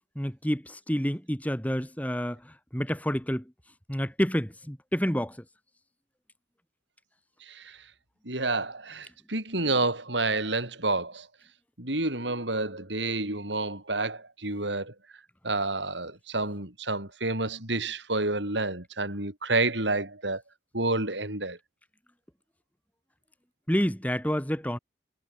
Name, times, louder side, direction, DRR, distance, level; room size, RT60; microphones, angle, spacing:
voice 1, 0.2-2.4 2.7-3.4 3.9-5.4 23.7-24.8, equal, 10° left, 2.7 m, -28 dB
voice 2, 8.3-11.3 11.8-14.9 15.4-20.4 20.7-21.6, right 2 dB, 80° right, 7.2 m, -29 dB
head